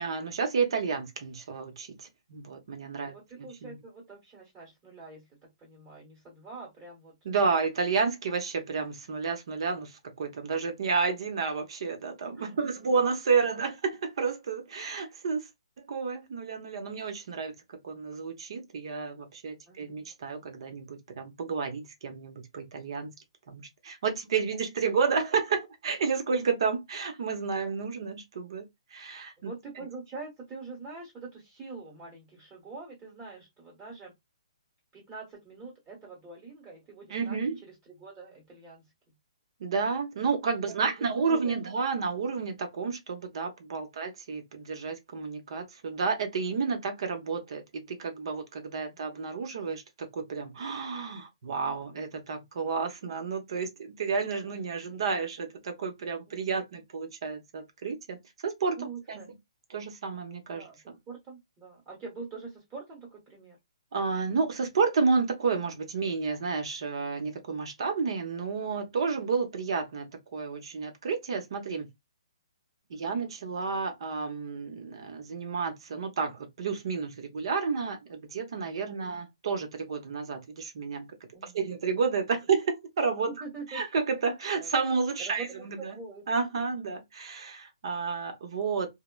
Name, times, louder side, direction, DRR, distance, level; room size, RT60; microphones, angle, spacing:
voice 1, 0.0-3.1 3.6-3.8 7.2-15.5 15.9-17.5 17.8-23.1 23.5-29.5 37.1-37.6 39.6-58.2 58.4-58.8 59.1-59.2 59.7-61.0 63.9-71.9 72.9-81.1 81.5-83.3 83.7-86.0 86.3-88.9, right 5 dB, 50° right, 0.7 m, -31 dB
voice 2, 3.0-7.4 12.2-12.9 19.7-20.0 29.4-34.1 34.9-39.2 40.7-41.5 43.7-43.9 56.3-56.8 58.8-59.3 60.5-60.8 61.1-63.6 72.9-73.2 78.8-79.2 81.3-81.7 83.2-83.8 84.5-84.7 85.2-86.3, right 4 dB, 15° right, 1.1 m, -45 dB
3.1 x 2.1 x 2.2 m
hypercardioid pair, 165°, 4 cm